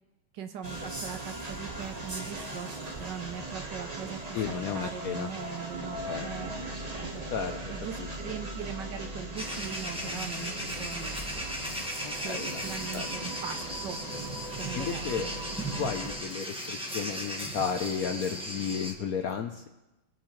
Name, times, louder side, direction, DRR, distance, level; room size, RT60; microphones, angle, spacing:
voice 1, 0.3-2.7 3.0-6.5 7.0-7.2 7.7-11.2 12.1-14.0 14.6-15.4, right 8 dB, 70° right, 8 dB, 1.3 m, -40 dB
sound 1, 0.6-16.2, right 1 dB, 25° right, 1.1 m, -39 dB
voice 2, 4.3-5.3 6.1-6.3 7.3-7.5 8.0-8.1 12.0-12.6 12.9-13.3 14.7-15.3 15.8-19.7, left 7 dB, 65° left, 5 dB, 0.9 m, -33 dB
sound 2, 9.4-18.9, equal, 5° right, 1.3 m, -37 dB
21.5 x 8.5 x 3.1 m, 1.0 s
omnidirectional pair, 2.2 m